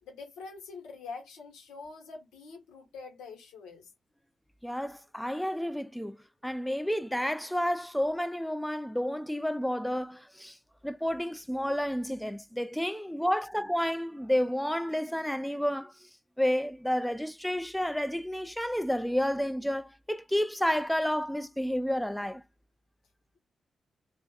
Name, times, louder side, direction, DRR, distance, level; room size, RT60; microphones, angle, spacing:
voice 1, 0.0-3.9, left 4 dB, 85° left, 1.2 m, -45 dB
voice 2, 4.6-6.2 6.4-10.6 10.8-16.1 16.4-22.4, equal, 5° left, 0.4 m, -30 dB
2.5 x 2.4 x 3.8 m
hypercardioid pair, 40°, 0 cm